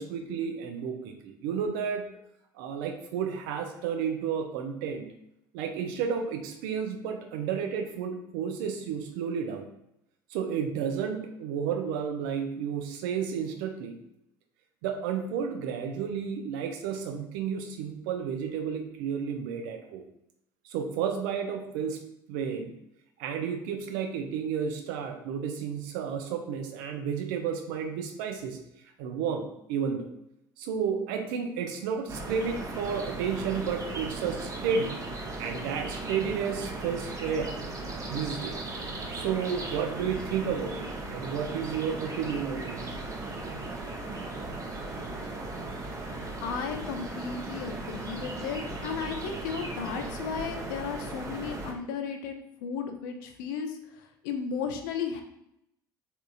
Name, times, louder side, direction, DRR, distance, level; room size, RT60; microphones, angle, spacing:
voice 1, 0.0-2.1 2.6-5.1 5.5-9.7 10.3-14.0 14.8-20.0 20.6-22.0 22.3-22.7 23.2-28.6 29.0-30.1 30.6-35.0 35.4-37.5 38.1-38.6 39.1-42.8, right 7 dB, 65° right, 5 dB, 0.5 m, -32 dB
sound 1, 32.1-51.7, right 2 dB, 30° right, 0.7 m, -37 dB
voice 2, 46.4-52.3 52.6-55.2, left 6 dB, 70° left, 6 dB, 0.4 m, -34 dB
3.5 x 2.7 x 2.3 m, 0.79 s
hypercardioid pair, 60°, 11 cm